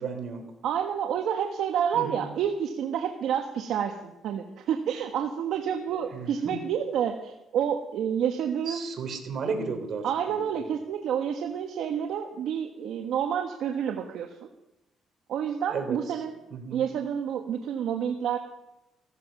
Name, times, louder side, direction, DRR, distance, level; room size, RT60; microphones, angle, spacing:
voice 1, 0.0-0.5 1.9-2.2 5.9-6.6 8.7-10.6 15.7-16.0 16.5-16.9, right 5 dB, 60° right, 5 dB, 3.8 m, -34 dB
voice 2, 0.6-8.8 10.0-14.5 15.3-16.3 16.7-18.4, right 8 dB, 80° right, 4 dB, 1.3 m, -29 dB
16.0 x 14.0 x 5.9 m, 0.92 s
cardioid pair, 90°, 0 cm